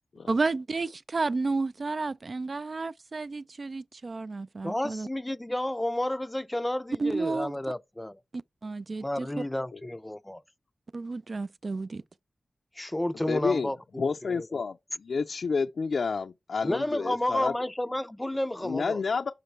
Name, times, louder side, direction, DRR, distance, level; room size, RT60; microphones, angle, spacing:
voice 1, 0.3-5.1 7.0-7.5 8.6-9.3 10.9-12.0, right 3 dB, 50° right, 0.3 m, -31 dB
voice 2, 4.6-8.2 9.0-10.4 12.8-14.6 16.6-19.0, left 1 dB, 15° left, 0.4 m, -31 dB
voice 3, 13.3-13.7 14.0-17.5 18.6-19.3, left 5 dB, 80° left, 0.4 m, -29 dB
6.7 x 5.1 x 4.4 m
wide cardioid pair, 80°, 0 cm